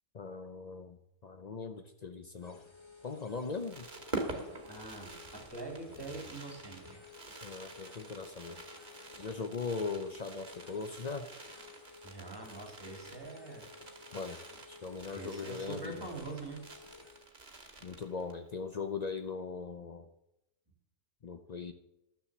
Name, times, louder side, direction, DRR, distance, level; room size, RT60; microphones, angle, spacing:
voice 1, 0.1-2.6 3.0-3.9 7.4-8.6 9.1-11.3 14.1-14.4 14.7-16.1 17.8-20.1 21.2-21.7, left 4 dB, 90° left, 7 dB, 0.3 m, -40 dB
sound 1, 2.4-17.3, left 5 dB, 20° left, 0.9 m, -55 dB
Fireworks, 3.3-18.5 18.8-18.9 19.0-19.3, right 2 dB, 30° right, 1.7 m, -47 dB
voice 2, 4.7-7.0 12.0-13.7 15.1-16.7, right 3 dB, 15° right, 2 dB, 2.1 m, -44 dB
12.5 x 6.9 x 7.2 m, 0.86 s
omnidirectional pair, 1.7 m